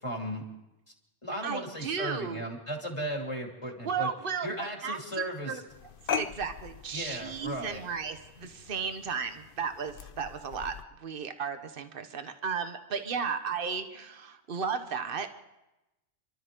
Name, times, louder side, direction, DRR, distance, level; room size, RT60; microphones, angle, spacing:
voice 1, 0.0-0.4 1.2-4.1 4.4-5.6 6.9-7.8, equal, 30° left, 0 dB, 2.8 m, -36 dB
voice 2, 1.4-2.4 3.8-4.5 4.8-5.0 5.5-5.6 6.2-10.7 11.0-15.3, right 6 dB, 55° right, 8 dB, 1.3 m, -34 dB
sound 1, 5.7-10.8, left 6 dB, 60° left, 0.9 m, -40 dB
29.5 x 13.0 x 3.8 m, 0.94 s
omnidirectional pair, 1.1 m